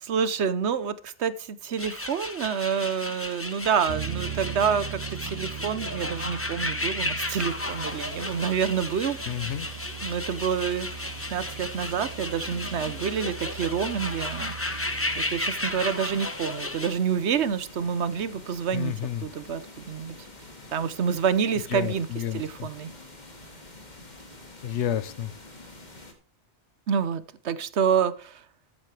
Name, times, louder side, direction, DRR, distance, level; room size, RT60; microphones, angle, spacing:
voice 1, 0.0-9.2 10.0-10.9 11.3-14.5 15.2-18.9 19.2-19.6 19.9-20.2 20.7-22.1 22.3-22.9 26.9-28.4, right 7 dB, 75° right, 14 dB, 1.1 m, -28 dB
sound 1, 1.8-16.9, left 2 dB, 15° left, 0.8 m, -34 dB
sound 2, 3.9-16.5, right 9 dB, 55° right, 2.2 m, -40 dB
sound 3, 7.4-26.1, left 2 dB, 40° left, 1.9 m, -47 dB
voice 2, 9.3-9.7 18.7-19.3 21.7-22.7 24.6-25.3, left 10 dB, 85° left, 16 dB, 1.0 m, -30 dB
14.0 x 8.4 x 3.3 m, 0.41 s
omnidirectional pair, 1.2 m